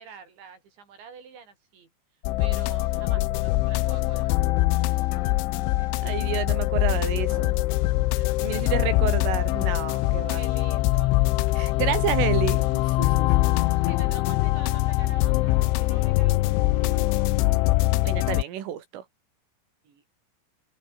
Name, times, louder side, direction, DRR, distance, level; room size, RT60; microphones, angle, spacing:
voice 1, 0.0-1.9 2.4-4.3 8.1-8.7 10.3-11.2 11.8-12.2 12.6-12.7 13.5-17.3 19.8-20.0, right 6 dB, 65° right, 7.3 m, -47 dB
sound 1, 2.2-18.4, left 19 dB, 85° left, 3.2 m, -23 dB
voice 2, 6.0-7.6 8.4-10.4 11.6-12.7 13.0-13.3 18.0-19.1, right 10 dB, 90° right, 5.2 m, -30 dB
sound 2, 6.7-13.5, left 8 dB, 70° left, 5.8 m, -54 dB
open air
omnidirectional pair, 5.6 m